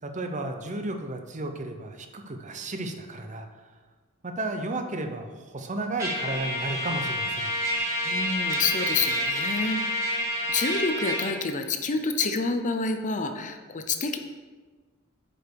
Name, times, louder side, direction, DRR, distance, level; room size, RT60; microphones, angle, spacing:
voice 1, 0.0-3.5 4.2-7.5, right 2 dB, 35° right, 5 dB, 0.8 m, -33 dB
Trumpet, 6.0-11.3, equal, 15° right, 2.1 m, -28 dB
voice 2, 8.0-14.2, left 4 dB, 35° left, 7 dB, 0.6 m, -28 dB
8.6 x 5.3 x 4.7 m, 1.4 s
head